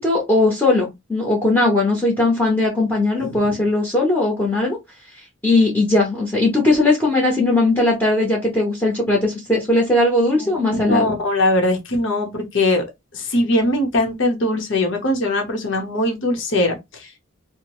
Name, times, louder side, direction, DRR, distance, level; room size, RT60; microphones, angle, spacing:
voice 1, 0.0-4.8 5.4-11.1, left 2 dB, 10° left, 0.9 m, -18 dB
voice 2, 3.2-3.5 10.3-12.8 13.1-17.2, left 1 dB, 65° left, 0.9 m, -21 dB
2.8 x 2.1 x 2.9 m
head